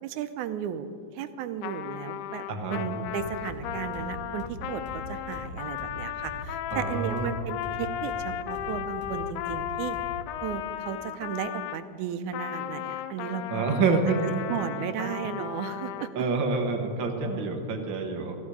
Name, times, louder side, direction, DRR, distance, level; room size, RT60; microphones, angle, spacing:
voice 1, 0.0-2.4 2.7-4.8 5.1-10.0 10.4-13.6 14.5-16.1, right 9 dB, 80° right, 10 dB, 2.1 m, -35 dB
Trumpet, 1.6-11.8 12.3-16.1, left 12 dB, 85° left, 2.0 m, -35 dB
voice 2, 2.5-2.8 6.7-7.3 13.5-14.4 16.1-18.4, right 4 dB, 50° right, 3 dB, 1.6 m, -27 dB
sound 1, 3.0-10.4, right 1 dB, 30° left, 2.4 m, -43 dB
16.0 x 14.0 x 4.9 m, 2.3 s
omnidirectional pair, 3.5 m